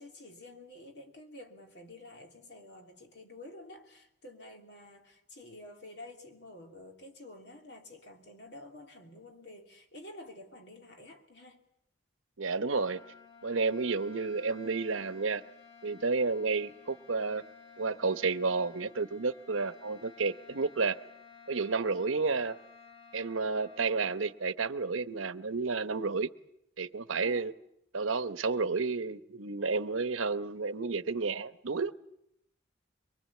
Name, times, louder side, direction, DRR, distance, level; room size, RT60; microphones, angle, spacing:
voice 1, 0.0-11.6 27.2-27.5, left 1 dB, 55° left, 3.2 m, -50 dB
voice 2, 12.4-13.0 13.4-15.4 15.8-17.4 17.8-21.0 21.5-22.6 23.1-26.3 26.8-27.5 27.9-32.2, right 4 dB, 90° right, 1.0 m, -31 dB
sound 1, 12.5-24.4, left 4 dB, 90° left, 5.1 m, -55 dB
23.5 x 23.5 x 8.5 m
head